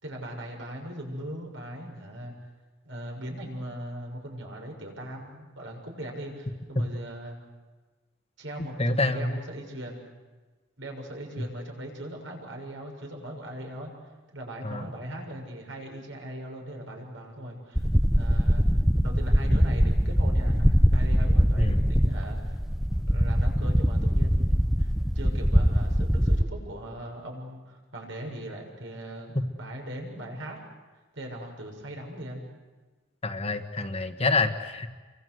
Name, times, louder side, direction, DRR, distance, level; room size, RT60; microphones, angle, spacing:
voice 1, 0.0-2.3 2.8-7.4 8.4-10.1 10.8-18.6 19.0-22.6 23.0-30.6 31.1-32.5, right 1 dB, 70° right, 1 dB, 7.1 m, -39 dB
voice 2, 8.8-9.3 14.6-14.9 21.6-21.8 33.2-34.9, left 2 dB, 30° left, 6 dB, 1.6 m, -27 dB
sound 1, 17.8-26.4, equal, ahead, 0.8 m, -22 dB
29.5 x 24.5 x 8.1 m, 1.3 s
head